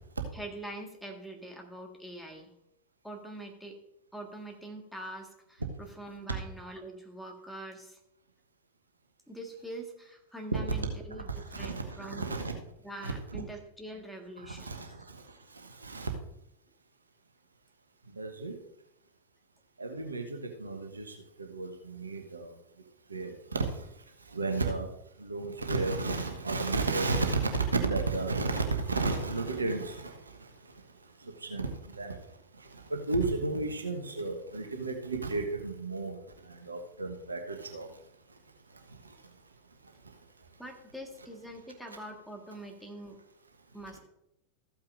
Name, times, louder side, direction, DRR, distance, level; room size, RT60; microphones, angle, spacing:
voice 1, 0.3-2.5 3.0-3.8 4.1-8.0 9.3-12.3 12.8-14.8 40.6-43.2 43.7-44.0, right 1 dB, ahead, 1 dB, 1.6 m, -44 dB
voice 2, 11.4-12.5 13.0-13.4 14.4-15.2 15.5-16.1 18.2-18.5 19.8-22.5 23.1-23.8 24.3-24.9 25.2-30.5 31.2-32.2 32.6-36.2 36.4-37.9 43.9-44.0, right 3 dB, 75° right, 4 dB, 1.2 m, -33 dB
14.0 x 8.7 x 2.6 m, 0.84 s
figure-of-eight pair, 90°, 0 cm